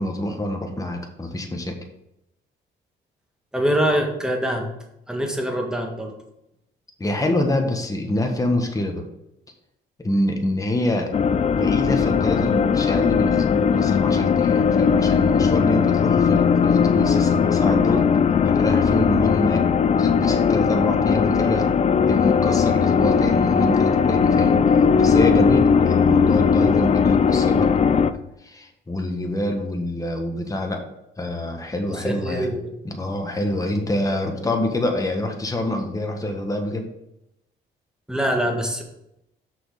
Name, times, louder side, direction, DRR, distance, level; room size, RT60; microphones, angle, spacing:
voice 1, 0.0-1.8 7.0-9.0 10.0-18.1 18.4-19.6 20.0-21.6 22.1-24.6 24.9-30.8 31.2-32.5 32.8-36.9, left 1 dB, 15° left, 3 dB, 1.4 m, -26 dB
voice 2, 3.5-4.7 5.1-6.1 31.9-32.8 38.1-38.8, equal, 5° right, 1 dB, 1.7 m, -24 dB
sound 1, 11.1-28.1, left 6 dB, 35° left, 0.4 m, -18 dB
6.2 x 6.0 x 4.9 m, 0.85 s
cardioid pair, 90°, 20 cm